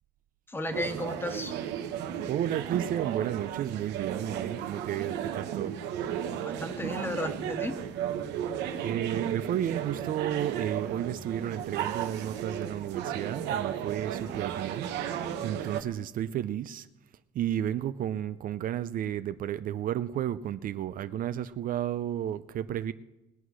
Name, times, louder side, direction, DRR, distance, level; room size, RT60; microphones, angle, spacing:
voice 1, 0.5-1.5 6.4-7.8, left 1 dB, 15° left, 8 dB, 1.4 m, -34 dB
sound 1, 0.7-15.8, right 9 dB, 90° right, 1.2 m, -34 dB
voice 2, 2.3-5.8 8.5-16.9 17.3-22.9, right 10 dB, 55° right, 13 dB, 0.5 m, -32 dB
20.0 x 8.0 x 6.3 m, 1.0 s
cardioid pair, 110°, 17 cm